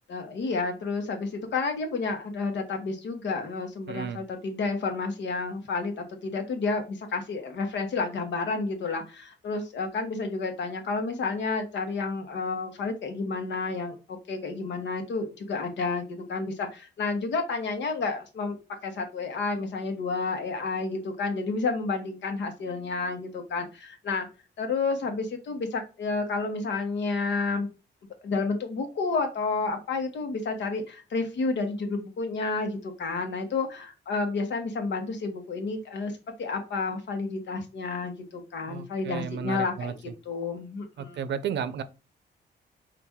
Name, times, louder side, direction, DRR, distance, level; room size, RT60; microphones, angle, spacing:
voice 1, 0.1-18.6 18.8-24.3 24.6-27.7 28.2-36.1 36.4-39.9 40.2-41.2, left 4 dB, 75° left, 1.2 m, -30 dB
voice 2, 3.9-4.2 38.7-39.9 41.0-41.8, right 7 dB, 75° right, 0.6 m, -33 dB
5.8 x 2.6 x 3.5 m
wide cardioid pair, 175°, 19 cm